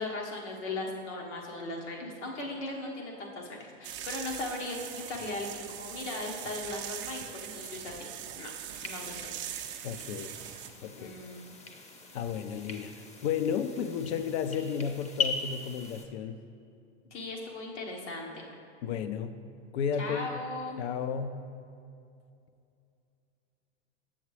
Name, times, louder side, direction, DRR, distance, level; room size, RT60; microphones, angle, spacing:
voice 1, 0.0-8.1 8.4-8.5 8.8-9.3 9.6-9.8 11.0-11.4 17.1-18.4 19.9-20.8, left 2 dB, 85° left, -1 dB, 1.4 m, -38 dB
sound 1, 3.8-10.7, right 11 dB, 35° right, 0.5 m, -41 dB
sound 2, 8.7-16.0, left 5 dB, 20° left, 0.7 m, -40 dB
voice 2, 9.8-10.4 10.8-11.1 12.1-16.4 18.8-19.4 19.7-20.4 20.8-21.4, left 7 dB, 70° left, 10 dB, 0.5 m, -33 dB
7.2 x 7.2 x 3.2 m, 2.5 s
hypercardioid pair, 100°, 35 cm